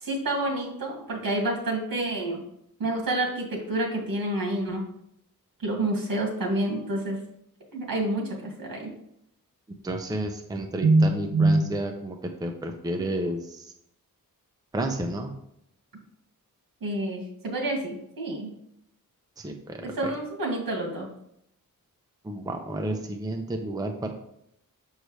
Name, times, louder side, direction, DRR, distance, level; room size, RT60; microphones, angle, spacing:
voice 1, 0.0-2.4 2.8-4.8 5.6-7.2 7.7-8.9 10.8-11.7 16.8-18.5 19.8-21.1, right 2 dB, 75° right, 0 dB, 2.1 m, -27 dB
voice 2, 9.8-13.7 14.7-15.3 19.4-20.1 22.2-24.1, right 1 dB, 10° right, 4 dB, 0.6 m, -31 dB
6.6 x 6.5 x 3.2 m, 0.74 s
wide cardioid pair, 155°, 34 cm